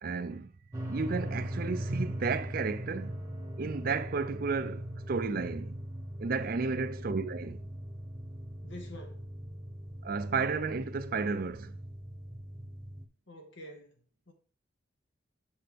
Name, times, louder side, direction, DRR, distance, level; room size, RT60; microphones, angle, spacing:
voice 1, 0.0-0.5 0.9-3.1 3.6-5.8 6.2-7.6 10.0-11.7, right 4 dB, 45° right, 0.5 m, -32 dB
sound 1, 0.7-13.0, right 1 dB, 15° right, 1.0 m, -40 dB
voice 2, 8.6-9.2 13.3-14.0 14.3-14.4, left 1 dB, 70° left, 1.7 m, -47 dB
7.8 x 5.9 x 3.4 m
head